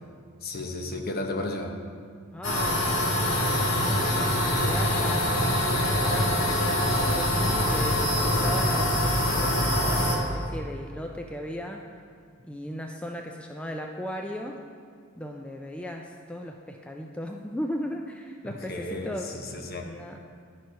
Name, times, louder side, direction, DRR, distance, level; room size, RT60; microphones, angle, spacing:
voice 1, 0.4-1.8 18.4-19.9, left 2 dB, 50° left, 2 dB, 0.9 m, -34 dB
voice 2, 2.3-5.3 6.1-11.8 12.4-14.6 15.1-19.3 19.8-20.2, equal, 5° left, 2 dB, 0.3 m, -36 dB
sound 1, 2.4-10.2, left 1 dB, 90° left, 1.6 m, -24 dB
10.5 x 4.5 x 5.1 m, 2.2 s
head